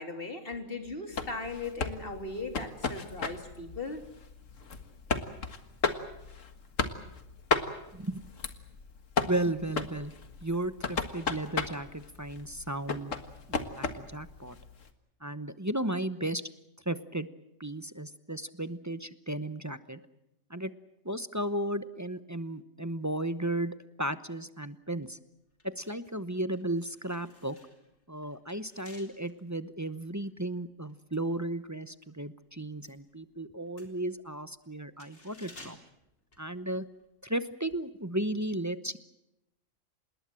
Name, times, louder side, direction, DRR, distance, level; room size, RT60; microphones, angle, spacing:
voice 1, 0.0-4.0, left 3 dB, 45° left, 5 dB, 3.4 m, -38 dB
sound 1, 1.1-14.9, left 4 dB, 85° left, 2.0 m, -35 dB
voice 2, 9.3-10.1 10.4-13.1 13.5-14.6 15.2-16.4 16.8-17.3 17.6-20.0 20.5-20.7 21.0-25.2 25.6-27.6 28.1-35.8 36.4-36.8 37.2-39.0, right 1 dB, 15° right, 12 dB, 0.8 m, -34 dB
sound 2, 25.5-32.1 32.4-37.1 37.3-37.5, left 1 dB, 65° left, 4.4 m, -57 dB
27.0 x 21.0 x 7.6 m, 0.88 s
omnidirectional pair, 1.3 m